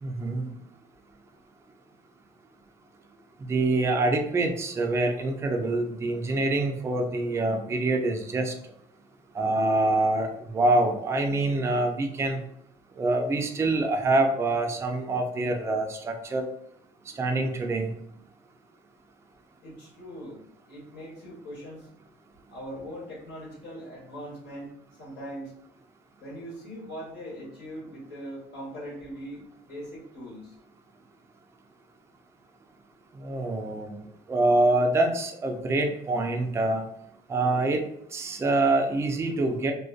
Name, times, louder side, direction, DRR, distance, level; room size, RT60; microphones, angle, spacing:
voice 1, 0.0-0.5 3.5-8.5 9.4-12.4 13.0-16.5 17.2-17.9 33.2-34.0 34.3-36.8 37.3-37.8 38.1-39.7, right 2 dB, 15° right, 4 dB, 0.3 m, -25 dB
voice 2, 19.6-21.9 22.5-24.7 25.0-25.5 26.2-30.5, equal, 80° left, -4 dB, 1.1 m, -41 dB
2.5 x 2.1 x 2.3 m, 0.74 s
cardioid pair, 110°, 17 cm